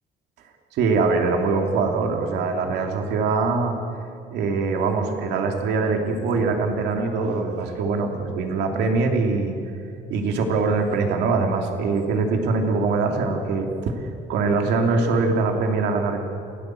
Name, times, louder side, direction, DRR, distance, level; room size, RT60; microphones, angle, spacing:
voice 1, 0.7-3.7 4.3-9.5 10.1-14.0 14.3-16.2, right 4 dB, 85° right, 3 dB, 2.9 m, -23 dB
28.0 x 18.0 x 7.7 m, 2.5 s
cardioid pair, 110°, 17 cm